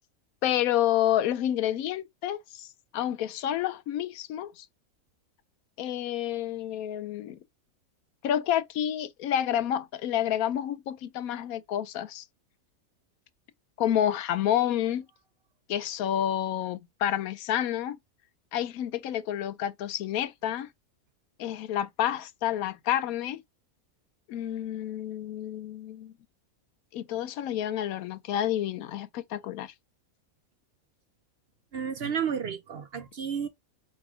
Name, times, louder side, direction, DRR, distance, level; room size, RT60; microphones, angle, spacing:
voice 1, 0.4-2.7 2.9-4.6 5.8-7.4 8.2-12.2 13.8-15.1 15.7-17.9 18.5-20.7 21.4-23.4 24.3-26.1 26.9-29.7, left 11 dB, 90° left, 1.1 m, -29 dB
voice 2, 31.7-33.5, right 7 dB, 55° right, 0.8 m, -31 dB
4.7 x 3.0 x 3.5 m
omnidirectional pair, 1.5 m